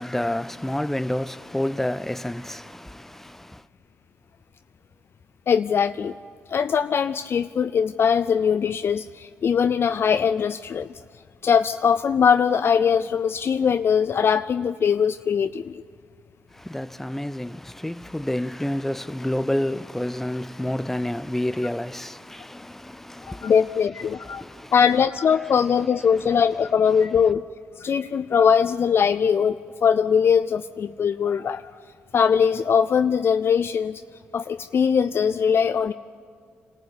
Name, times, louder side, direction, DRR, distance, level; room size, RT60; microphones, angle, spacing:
voice 1, 0.0-3.7 16.5-23.5 24.1-24.7 25.4-25.6 26.2-26.3, left 1 dB, 5° left, 0.6 m, -29 dB
voice 2, 5.5-6.1 6.5-10.9 11.4-15.8 23.3-24.4 24.7-27.4 27.8-29.6 29.8-31.6 32.1-34.0 34.3-35.9, left 7 dB, 50° left, 0.4 m, -21 dB
25.5 x 14.5 x 8.7 m
supercardioid pair, 55°, 5 cm